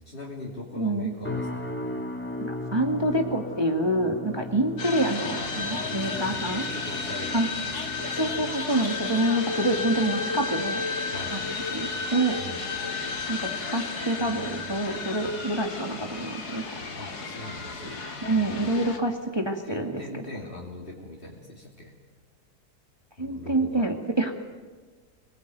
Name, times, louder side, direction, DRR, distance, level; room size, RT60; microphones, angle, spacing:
voice 1, 0.0-1.7 5.0-8.5 11.1-11.4 12.4-12.6 14.2-14.4 16.9-18.9 19.6-21.9 23.2-23.9, left 1 dB, 35° left, -3 dB, 3.2 m, -41 dB
voice 2, 0.8-1.1 2.4-6.7 7.3-7.5 8.1-10.8 11.3-11.4 11.7-12.4 13.3-16.6 18.2-20.2 23.2-24.3, right 1 dB, 15° right, 3 dB, 2.1 m, -27 dB
sound 1, 1.2-16.5 16.8-17.2 17.7-17.9, left 1 dB, 5° left, 1.9 m, -39 dB
sound 2, 4.8-19.0, left 4 dB, 75° left, 2.7 m, -33 dB
Telephone, 8.0-13.2, left 3 dB, 50° right, 2.8 m, -36 dB
25.5 x 20.0 x 9.3 m, 1.4 s
omnidirectional pair, 1.7 m